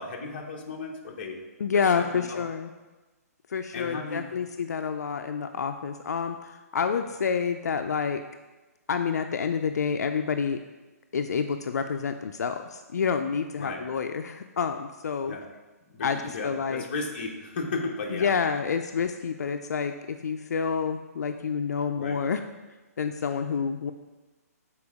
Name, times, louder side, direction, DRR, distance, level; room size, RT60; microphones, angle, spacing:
voice 1, 0.0-1.4 1.7-2.4 3.7-4.2 13.6-13.8 15.3-15.4 15.9-18.3 22.0-22.2, left 3 dB, 35° left, 0 dB, 0.8 m, -35 dB
voice 2, 1.6-2.7 3.5-8.2 8.9-10.6 11.1-15.3 16.0-16.8 18.1-22.4 23.0-23.9, left 6 dB, 80° left, 7 dB, 0.4 m, -28 dB
6.8 x 4.3 x 3.5 m, 1.2 s
hypercardioid pair, 180°, 9 cm